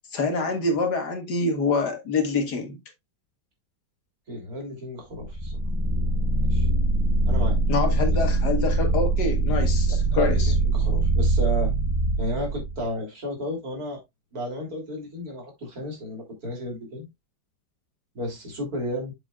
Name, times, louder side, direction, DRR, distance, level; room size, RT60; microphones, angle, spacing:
voice 1, 0.1-2.8 7.7-10.5, left 3 dB, 60° left, 2.0 m, -26 dB
voice 2, 4.3-5.6 6.4-6.7 7.3-7.6 8.1-8.2 9.9-11.7 12.2-14.0 14.3-17.1 18.1-19.1, left 1 dB, 50° right, 3.4 m, -33 dB
sound 1, 5.3-12.9, right 2 dB, 30° right, 0.4 m, -23 dB
7.5 x 7.3 x 2.3 m
omnidirectional pair, 2.0 m